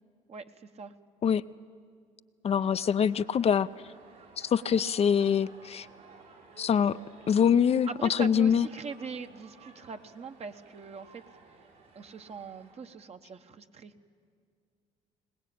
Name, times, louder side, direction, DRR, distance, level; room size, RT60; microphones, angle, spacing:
voice 1, 0.3-0.9 7.9-11.2 11.9-13.9, right 5 dB, 45° right, 8 dB, 1.1 m, -42 dB
voice 2, 2.4-3.7 4.4-5.9 6.6-7.0 7.3-8.7, left 7 dB, 40° left, 13 dB, 0.5 m, -24 dB
sound 1, 2.5-12.7, right 4 dB, 80° right, 6.0 m, -55 dB
22.0 x 19.5 x 8.6 m, 2.1 s
hypercardioid pair, 60°, 15 cm